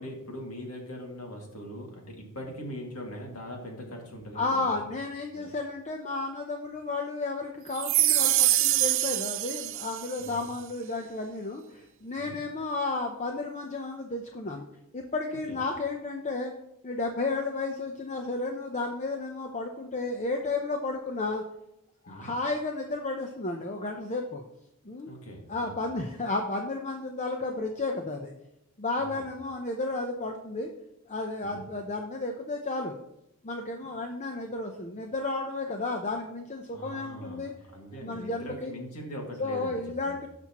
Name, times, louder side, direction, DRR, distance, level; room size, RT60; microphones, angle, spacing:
voice 1, 0.0-4.9 5.3-5.5 10.2-10.5 12.2-12.4 15.3-15.6 22.1-22.3 25.1-25.9 29.0-29.3 31.4-31.6 36.7-40.2, equal, 75° left, 0 dB, 2.3 m, -41 dB
voice 2, 4.3-14.6 14.9-16.5 16.8-21.4 22.0-24.4 24.8-25.1 25.5-28.3 28.8-30.7 31.1-33.0 33.4-37.5 38.0-38.7 39.4-40.3, left 3 dB, 35° left, 3 dB, 0.7 m, -32 dB
sound 1, 7.7-10.3, right 16 dB, 60° right, 0.5 m, -25 dB
17.0 x 6.0 x 3.0 m, 0.86 s
head